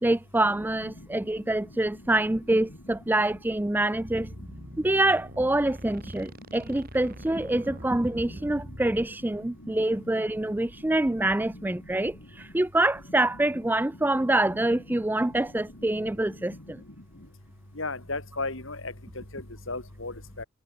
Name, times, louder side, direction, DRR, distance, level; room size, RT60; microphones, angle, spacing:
voice 1, 0.0-4.3 4.8-16.8, right 1 dB, 10° right, 0.4 m, -26 dB
sound 1, 3.9-9.0, equal, 45° right, 7.3 m, -44 dB
voice 2, 17.8-18.9 19.3-19.4 19.7-20.4, left 3 dB, 65° left, 3.4 m, -34 dB
head